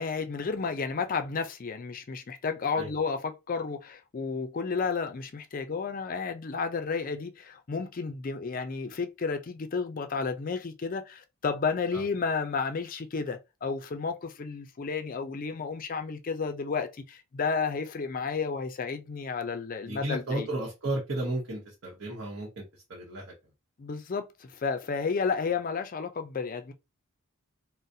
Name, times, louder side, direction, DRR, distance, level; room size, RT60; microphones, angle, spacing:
voice 1, 0.0-20.5 23.8-26.7, left 5 dB, 40° left, 0.4 m, -32 dB
voice 2, 19.8-23.3, right 1 dB, 55° right, 1.0 m, -34 dB
3.9 x 2.0 x 2.6 m
head